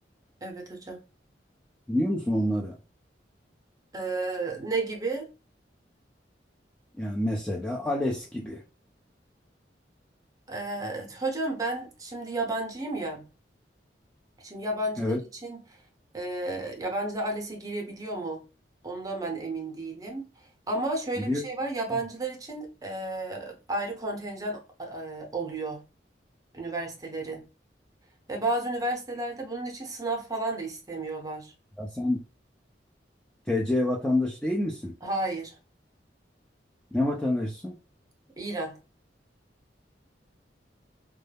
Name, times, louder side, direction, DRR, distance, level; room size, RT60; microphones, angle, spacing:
voice 1, 0.4-1.0 3.9-5.3 10.5-13.3 14.4-15.6 16.1-18.4 18.8-25.8 26.5-27.5 28.3-31.5 35.0-35.6 38.4-38.8, right 2 dB, 20° right, 0.7 m, -32 dB
voice 2, 1.9-2.7 7.0-8.6 15.0-15.2 21.2-21.4 31.8-32.2 33.5-34.9 36.9-37.7, left 1 dB, 5° left, 0.3 m, -27 dB
2.2 x 2.0 x 3.2 m
head